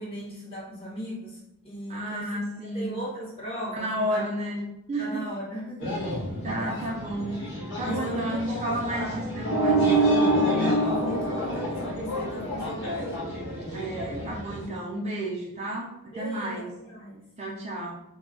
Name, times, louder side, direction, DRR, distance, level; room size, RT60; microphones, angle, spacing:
voice 1, 0.0-2.4 2.7-4.3 5.0-5.9 6.6-6.8 7.8-9.4 10.6-13.2 16.1-17.2, equal, 25° left, -6 dB, 0.8 m, -37 dB
voice 2, 1.9-3.0 3.7-5.2 6.4-7.4 7.8-9.8 13.7-16.8 17.4-18.0, right 1 dB, 30° right, -2 dB, 0.3 m, -32 dB
sound 1, 5.8-14.7, left 1 dB, 55° left, 1.0 m, -33 dB
sound 2, 9.4-12.4, right 2 dB, 90° left, 0.5 m, -23 dB
2.2 x 2.0 x 3.6 m, 0.82 s
head